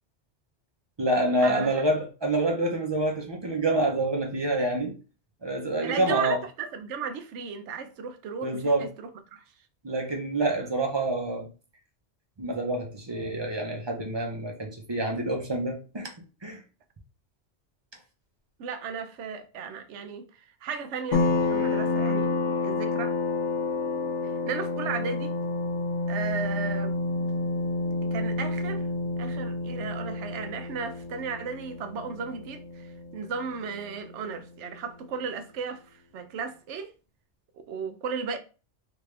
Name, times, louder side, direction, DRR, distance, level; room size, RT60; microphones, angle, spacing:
voice 1, 1.0-4.9 5.4-6.4 8.4-8.9 9.8-11.5 12.4-16.1 16.4-16.6, right 1 dB, 30° right, 0.6 m, -27 dB
voice 2, 5.8-9.4 18.6-21.2 21.5-22.3 22.6-23.1 24.2-25.4 26.1-27.0 28.0-28.9 29.2-36.9 37.7-38.4, right 6 dB, 90° right, 0.9 m, -35 dB
sound 1, 21.1-34.4, left 3 dB, 80° left, 0.9 m, -29 dB
3.3 x 2.5 x 3.2 m
omnidirectional pair, 1.2 m